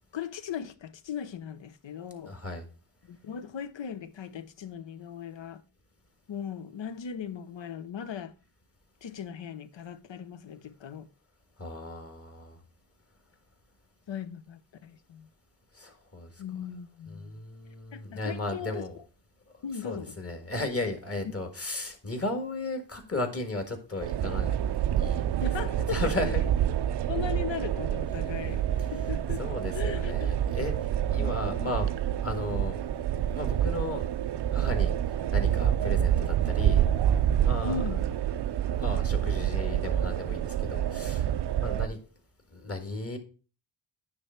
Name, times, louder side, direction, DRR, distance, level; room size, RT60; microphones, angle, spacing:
voice 1, 0.1-2.3 3.0-5.6 6.3-8.3 9.0-11.1 14.1-15.3 16.4-17.3 17.9-18.8 19.6-20.2 25.4-26.5 27.1-28.6 28.9-29.4 29.7-30.4 31.2-31.8 37.6-38.0, left 7 dB, 65° left, 0.8 m, -38 dB
voice 2, 2.3-2.6 11.6-12.6 15.7-16.4 17.1-19.0 19.8-24.6 25.0-26.4 29.4-31.9 32.2-32.8 33.4-34.1 34.5-36.8 37.4-37.8 38.8-41.3 41.6-42.0 42.5-43.2, left 2 dB, 30° left, 1.7 m, -35 dB
sound 1, 24.0-41.9, right 10 dB, 55° right, 0.5 m, -27 dB
9.7 x 3.4 x 5.6 m
wide cardioid pair, 100°, 49 cm